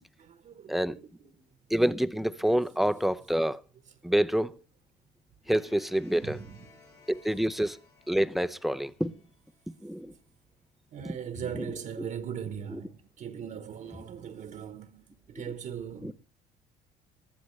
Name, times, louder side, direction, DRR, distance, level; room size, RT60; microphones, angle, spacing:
voice 1, 0.2-1.5 2.5-2.6 3.9-4.0 6.2-6.7 10.9-16.1, right 8 dB, 50° right, 1.2 m, -40 dB
voice 2, 1.7-3.6 4.0-4.5 5.5-6.4 7.1-7.8 8.1-9.1 9.7-10.1 11.0-11.1 11.5-11.7 12.0-12.1 12.7-12.8 16.0-16.1, equal, ahead, 0.6 m, -27 dB
sound 1, 5.4-10.3, left 5 dB, 85° left, 8.0 m, -60 dB
20.0 x 14.0 x 3.2 m
cardioid pair, 110°, 17 cm